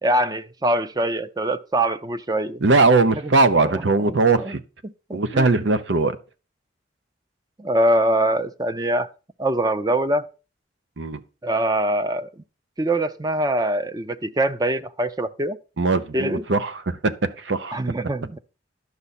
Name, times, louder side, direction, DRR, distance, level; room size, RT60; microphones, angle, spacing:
voice 1, 0.0-2.6 3.2-3.3 3.6-3.8 4.3-4.5 4.8-5.7 7.6-9.1 9.4-10.3 11.4-12.3 12.8-15.6 16.1-16.4 17.7-18.4, right 1 dB, 20° right, 0.5 m, -23 dB
voice 2, 2.6-4.6 5.1-6.2 11.0-11.2 15.8-17.8, right 3 dB, 80° right, 0.8 m, -20 dB
11.0 x 6.8 x 4.2 m
head